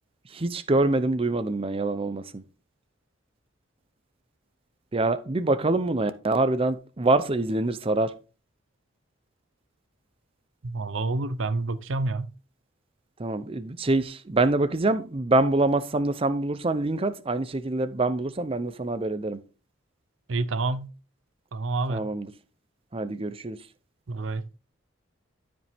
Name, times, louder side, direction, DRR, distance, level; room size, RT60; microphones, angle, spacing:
voice 1, 0.4-2.2 4.9-8.1 13.2-19.4 21.9-22.3 22.9-23.6, right 2 dB, 30° right, 0.6 m, -25 dB
voice 2, 10.6-12.3 20.3-20.9 21.5-22.0 24.1-24.4, right 3 dB, 75° right, 0.7 m, -28 dB
12.5 x 5.3 x 3.5 m
head